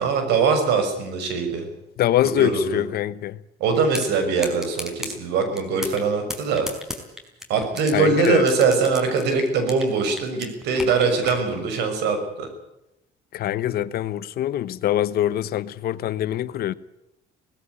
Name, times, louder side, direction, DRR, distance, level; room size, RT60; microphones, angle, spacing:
voice 1, 0.0-1.7 2.2-2.8 3.6-6.7 7.5-12.5, right 4 dB, 85° right, 6.1 m, -22 dB
voice 2, 2.0-3.4 7.9-8.5 13.3-16.7, left 12 dB, 65° left, 1.0 m, -23 dB
sound 1, 3.9-4.1 4.4-5.1 5.6-6.0 6.3-7.9 8.2-9.9 10.2-11.4, left 1 dB, 5° right, 4.9 m, -33 dB
18.5 x 16.0 x 9.8 m
cardioid pair, 110°, 17 cm